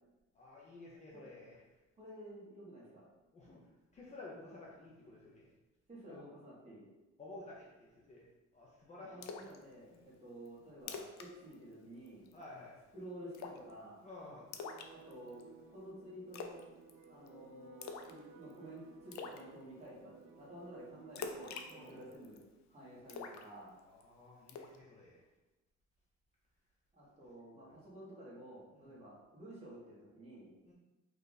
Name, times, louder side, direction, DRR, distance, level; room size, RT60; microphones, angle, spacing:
voice 1, 0.3-1.6 3.3-3.7 3.9-5.5 6.1-6.2 7.2-8.3 8.5-9.5 9.9-10.1 12.3-12.8 14.0-14.5 21.7-22.0 23.9-25.3 27.7-27.8 28.7-29.0 30.6-30.7, left 2 dB, 25° left, -5 dB, 0.5 m, -53 dB
voice 2, 2.0-3.0 5.9-6.9 8.9-12.3 12.9-14.0 14.9-16.6 17.1-22.4 22.7-23.8 26.9-30.5, right 1 dB, 20° right, -7 dB, 1.4 m, -52 dB
Splash splatter, 9.2-9.6 9.9-10.0 10.5-10.6 10.8-11.3 11.5-11.7 12.1-12.4 13.3-13.7 14.5-15.4 16.3-16.6 16.9-17.3 17.8-18.2 18.5-18.6 19.1-19.4 21.2-22.4 23.1-24.0 24.5-24.8, left 5 dB, 70° left, 0.5 m, -45 dB
sound 1, 14.5-22.1, right 5 dB, 85° right, 0.5 m, -58 dB
5.4 x 2.5 x 3.9 m, 1.1 s
cardioid pair, 180°, 29 cm